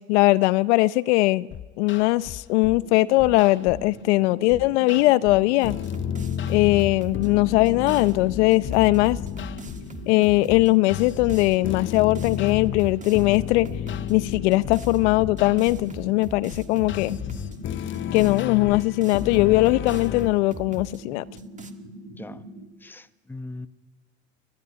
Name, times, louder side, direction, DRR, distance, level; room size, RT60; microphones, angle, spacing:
voice 1, 0.1-1.5 1.8-5.8 6.5-9.2 10.1-13.7 14.1-17.2 18.1-21.2, left 20 dB, 80° left, 0.7 m, -20 dB
sound 1, 1.5-2.8 3.2-3.9 4.5-20.3, left 10 dB, 35° left, 0.7 m, -33 dB
sound 2, 2.7-22.6, right 1 dB, 85° right, 3.4 m, -43 dB
sound 3, 5.5-8.1 8.5-10.7 11.1-11.6 11.9-14.1 14.5-15.0 15.4-17.6 17.9-21.0 21.4-21.7, right 3 dB, 20° right, 1.7 m, -42 dB
voice 2, 22.8-23.7, left 2 dB, 5° left, 0.9 m, -40 dB
21.5 x 15.0 x 9.9 m
supercardioid pair, 90°, 34 cm